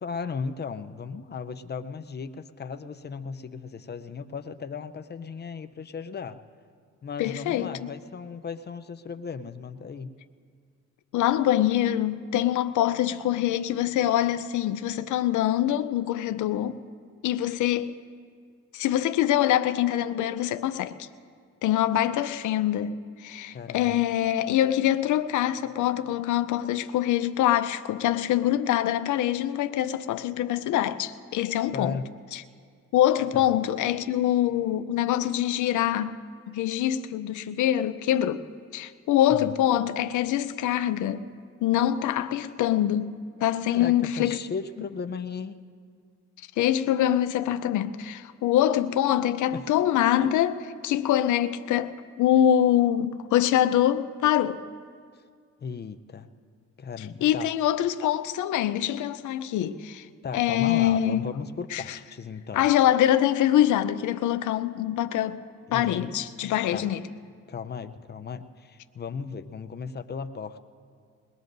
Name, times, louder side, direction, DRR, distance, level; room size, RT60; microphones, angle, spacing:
voice 1, 0.0-6.4 7.0-10.2 23.5-24.0 31.7-32.1 33.3-33.6 39.3-39.5 43.7-45.6 49.5-49.7 55.6-56.3 56.8-57.5 60.2-62.7 65.7-66.3 66.7-66.9 67.5-70.7, left 5 dB, 35° left, 0.6 m, -36 dB
voice 2, 7.2-7.9 11.1-16.8 17.2-18.0 18.7-21.1 21.6-22.9 23.2-32.0 32.3-32.4 32.9-36.2 36.5-38.4 38.7-41.2 41.6-44.4 46.6-54.6 57.2-60.1 60.3-61.3 61.7-61.8 62.5-65.4 65.7-67.0, left 11 dB, 75° left, 0.7 m, -24 dB
22.0 x 20.0 x 2.6 m
cardioid pair, 90°, 30 cm